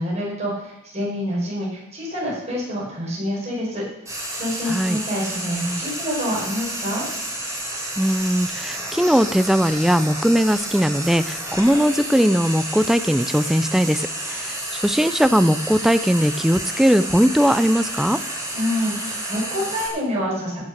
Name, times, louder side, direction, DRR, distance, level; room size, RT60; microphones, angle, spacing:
voice 1, 0.0-7.1 18.5-20.6, equal, 35° right, -5 dB, 5.5 m, -27 dB
Frying (food), 4.1-19.9, right 1 dB, 15° right, 3.2 m, -30 dB
voice 2, 4.7-5.0 8.0-18.2, equal, ahead, 12 dB, 0.3 m, -19 dB
16.0 x 6.6 x 6.5 m, 0.81 s
head